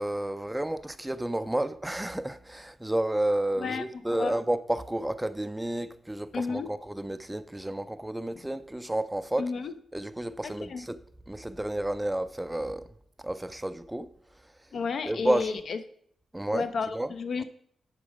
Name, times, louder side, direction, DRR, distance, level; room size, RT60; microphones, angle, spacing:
voice 1, 0.0-9.5 9.9-11.0 11.3-12.9 13.2-14.1 15.1-15.5 16.3-16.7 16.9-17.1, right 1 dB, 10° right, 0.4 m, -31 dB
voice 2, 6.3-6.7 9.4-9.7 10.4-10.9 14.7-15.8 16.5-17.4, left 5 dB, 65° left, 0.7 m, -32 dB
8.4 x 5.0 x 5.1 m
cardioid pair, 100°, 0 cm